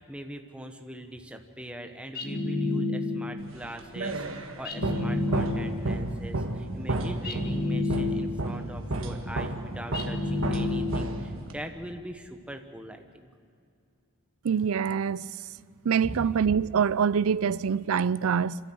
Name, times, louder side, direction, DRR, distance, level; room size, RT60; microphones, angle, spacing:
voice 1, 0.0-13.3 16.0-16.3, right 1 dB, 5° right, 1.1 m, -42 dB
sound 1, 2.1-3.5 4.6-6.0 7.2-8.6 9.9-11.3, left 2 dB, 45° left, 1.7 m, -30 dB
sound 2, 3.5-11.7, right 2 dB, 65° right, 1.5 m, -32 dB
voice 2, 14.4-15.3 15.8-18.6, right 7 dB, 80° right, 0.4 m, -25 dB
26.0 x 13.5 x 7.8 m
head